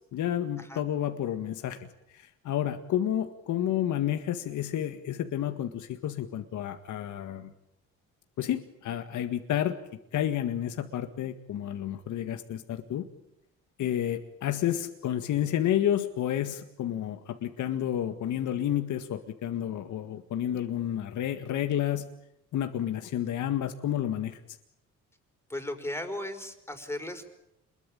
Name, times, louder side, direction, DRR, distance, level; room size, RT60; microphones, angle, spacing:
voice 1, 0.1-1.8 2.1-7.5 8.4-9.7 10.1-13.1 13.8-22.1 22.5-24.4, left 11 dB, 75° left, 7 dB, 1.9 m, -30 dB
voice 2, 25.5-27.3, left 1 dB, 10° left, 6 dB, 5.1 m, -36 dB
28.0 x 22.0 x 8.9 m, 0.84 s
cardioid pair, 90°, 30 cm